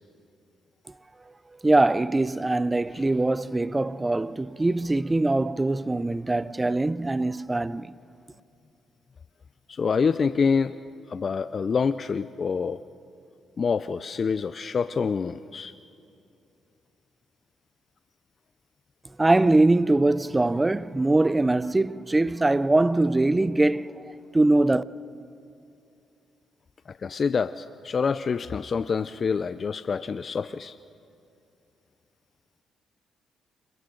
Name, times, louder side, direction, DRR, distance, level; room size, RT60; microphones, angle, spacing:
voice 1, 1.3-7.9 19.2-24.8, right 2 dB, 20° right, 0.5 m, -22 dB
voice 2, 9.7-10.8 11.1-12.8 13.6-15.7 26.9-30.7, left 5 dB, 45° left, 0.4 m, -26 dB
29.5 x 27.0 x 3.9 m
cardioid pair, 80°, 0 cm